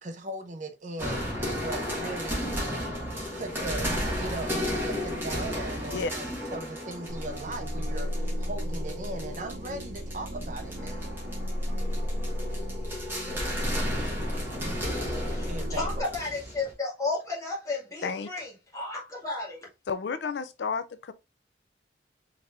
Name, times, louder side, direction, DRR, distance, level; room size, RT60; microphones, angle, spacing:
voice 1, 0.0-2.5 3.3-11.1 15.4-16.1, right 2 dB, 45° right, 0.7 m, -39 dB
sound 1, 1.0-16.7, equal, 15° right, 1.8 m, -34 dB
sound 2, 7.1-16.0, equal, 85° right, 1.0 m, -34 dB
voice 2, 15.3-19.6, left 3 dB, 20° left, 2.0 m, -33 dB
voice 3, 19.9-21.1, left 5 dB, 75° left, 0.4 m, -31 dB
5.0 x 3.2 x 2.6 m
head